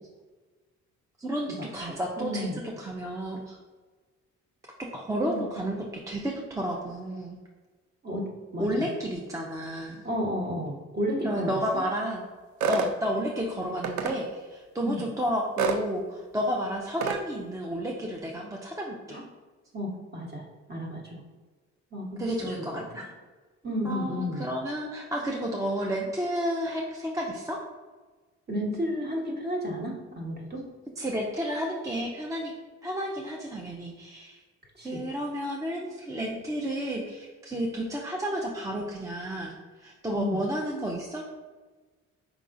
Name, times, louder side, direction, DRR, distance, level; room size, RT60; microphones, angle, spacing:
voice 1, 1.2-3.6 4.8-7.4 8.6-10.0 11.2-12.2 12.7-19.2 22.2-23.1 23.8-27.6 31.0-32.5 32.8-34.4 34.8-39.5 39.8-41.3, equal, 10° right, -1 dB, 0.4 m, -31 dB
voice 2, 1.7-2.6 5.2-5.7 8.0-8.9 10.0-11.8 14.8-15.0 19.1-19.2 19.7-21.2 21.9-22.8 23.6-24.4 28.5-30.6 34.7-35.1 40.1-40.4, equal, 35° right, -1 dB, 1.1 m, -33 dB
sound 1, 12.6-12.9 13.8-14.2 15.6-15.8 17.0-17.2, right 5 dB, 75° right, 0.5 m, -26 dB
4.8 x 3.5 x 2.5 m, 1.3 s
cardioid pair, 90°, 30 cm